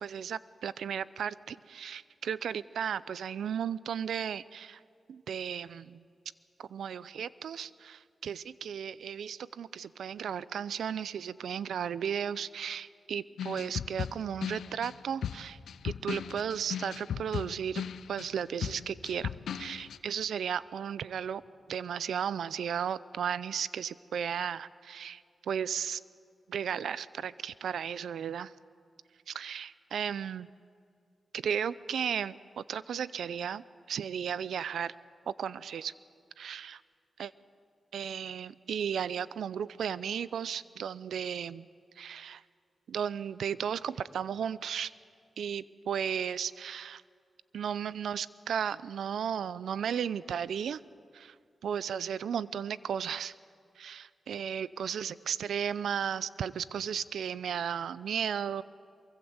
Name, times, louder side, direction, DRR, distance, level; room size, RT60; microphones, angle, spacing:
voice 1, 0.0-4.8 5.1-6.0 6.6-15.6 15.8-19.3 19.6-21.4 21.7-26.0 26.5-28.5 29.3-30.5 31.3-34.9 35.3-35.9 36.4-36.8 37.2-37.3 37.9-41.7 42.0-42.4 42.9-44.9 45.4-47.0 47.5-50.8 51.1-51.3 51.6-53.3 53.8-58.6, right 8 dB, 85° right, 18 dB, 0.5 m, -35 dB
sound 1, 13.4-20.0, left 8 dB, 85° left, 0.6 m, -37 dB
24.0 x 23.0 x 8.0 m, 2.3 s
cardioid pair, 55°, 0 cm